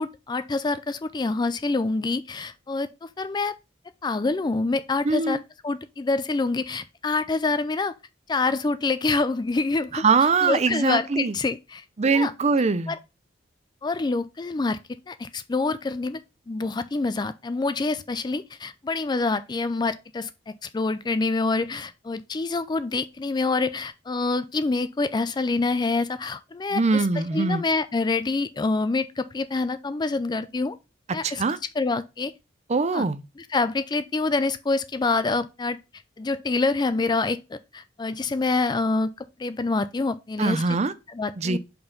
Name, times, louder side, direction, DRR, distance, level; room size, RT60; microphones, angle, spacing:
voice 1, 0.0-3.5 4.0-5.4 5.6-7.9 8.3-10.0 10.4-11.8 12.1-12.3 12.9-13.0 13.8-14.8 15.1-16.2 16.5-20.3 20.6-27.0 27.3-30.8 31.1-31.4 31.8-32.3 32.9-33.1 33.5-35.8 36.2-40.6 41.1-41.6, left 3 dB, 20° left, 0.4 m, -26 dB
voice 2, 5.0-5.4 9.9-11.3 12.0-12.9 26.7-27.6 31.2-31.6 32.7-33.2 40.4-40.9 41.4-41.6, right 4 dB, 35° right, 0.5 m, -22 dB
5.5 x 4.4 x 5.3 m
head